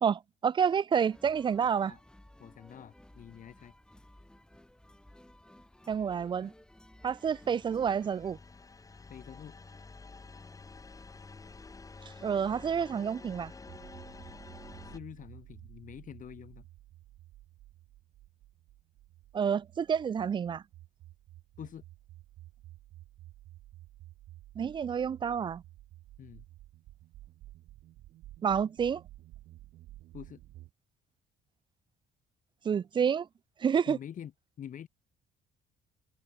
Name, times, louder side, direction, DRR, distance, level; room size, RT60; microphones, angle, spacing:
voice 1, 0.0-1.9 5.9-6.5 7.0-8.4 12.2-13.5 19.3-20.6 24.6-25.6 28.4-29.0 32.6-33.3 33.6-34.0, right 7 dB, 30° right, 0.4 m, -29 dB
sound 1, 1.1-8.3, left 1 dB, 5° left, 4.4 m, -57 dB
voice 2, 2.4-3.7 9.1-9.6 14.8-16.7 21.6-21.8 26.2-26.5 30.1-30.4 33.9-34.3 34.6-34.9, left 9 dB, 50° left, 6.7 m, -46 dB
sound 2, 7.2-15.0, left 3 dB, 20° left, 2.2 m, -50 dB
sound 3, 13.7-30.7, right 15 dB, 75° right, 3.7 m, -53 dB
cardioid pair, 110°, 17 cm